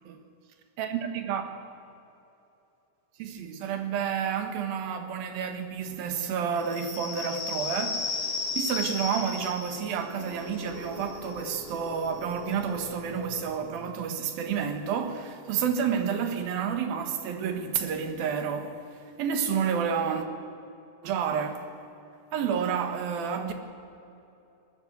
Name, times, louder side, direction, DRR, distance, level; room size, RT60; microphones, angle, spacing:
voice 1, 0.8-1.5 3.2-8.2 8.6-18.8 19.2-20.3 21.0-21.7 22.3-23.5, right 7 dB, 70° right, 3.2 m, -30 dB
sound 1, 6.6-13.9, left 4 dB, 45° left, 4.8 m, -36 dB
20.0 x 19.5 x 8.1 m
omnidirectional pair, 4.6 m